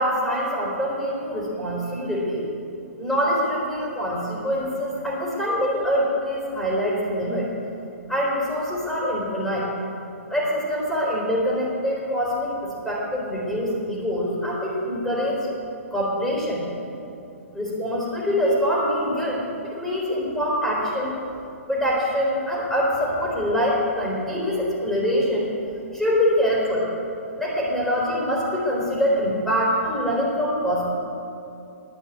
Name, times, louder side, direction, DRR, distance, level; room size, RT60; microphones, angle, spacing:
voice 1, 0.0-2.5 3.0-7.5 8.1-9.7 10.3-12.5 12.8-15.4 15.9-16.7 17.5-21.1 21.7-25.5 25.9-26.9 27.4-30.9, equal, 5° left, -6 dB, 3.7 m, -24 dB
10.5 x 9.1 x 9.3 m, 2.7 s
figure-of-eight pair, 120°, 8 cm